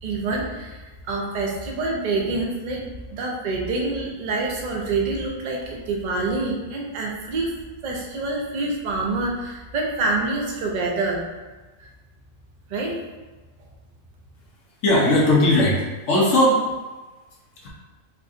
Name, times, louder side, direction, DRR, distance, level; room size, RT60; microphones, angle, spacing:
voice 1, 0.0-2.8 3.1-7.5 7.8-11.2 11.8-11.9 12.7-13.0, right 3 dB, 55° right, -1 dB, 0.5 m, -26 dB
voice 2, 14.8-16.7 17.6-17.7, left 1 dB, 65° left, -4 dB, 1.1 m, -18 dB
4.5 x 2.6 x 2.5 m, 1.2 s
omnidirectional pair, 1.5 m